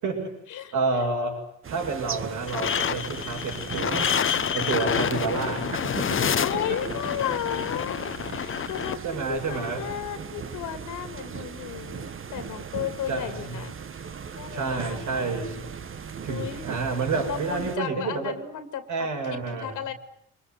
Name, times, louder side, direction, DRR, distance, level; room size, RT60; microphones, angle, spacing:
voice 1, 0.7-4.1 4.5-6.3 9.0-9.9 12.6-12.7 13.1-13.6 14.5-15.7 16.2-18.3 18.9-19.8, right 4 dB, 75° right, 3 dB, 7.0 m, -29 dB
sound 1, 1.6-17.8, right 6 dB, 45° right, 1.5 m, -38 dB
sound 2, 2.5-8.9, left 8 dB, 45° left, 1.1 m, -28 dB
voice 2, 6.4-13.7 14.3-15.3 16.3-16.6 17.2-19.9, left 10 dB, 85° left, 10 dB, 2.4 m, -34 dB
25.0 x 21.5 x 9.6 m, 0.72 s
cardioid pair, 90°, 30 cm